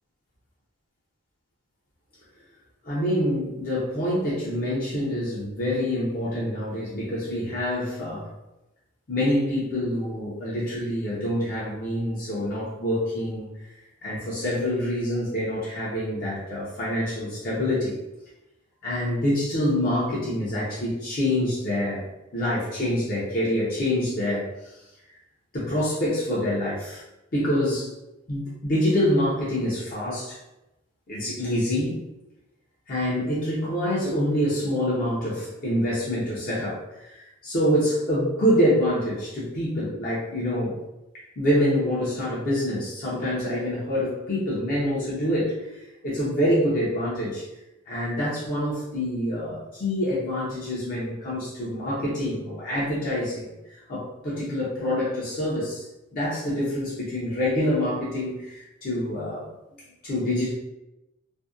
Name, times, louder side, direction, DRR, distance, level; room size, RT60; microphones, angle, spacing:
voice 1, 2.8-8.3 9.1-13.5 14.0-18.0 18.8-22.0 22.3-24.5 25.5-27.0 27.3-27.9 28.3-30.4 31.1-32.0 32.9-40.8 41.4-45.5 46.0-47.4 47.9-53.5 53.9-55.9 56.1-59.5 60.0-60.5, left 1 dB, 40° left, -8 dB, 0.5 m, -26 dB
2.6 x 2.1 x 2.4 m, 0.95 s
head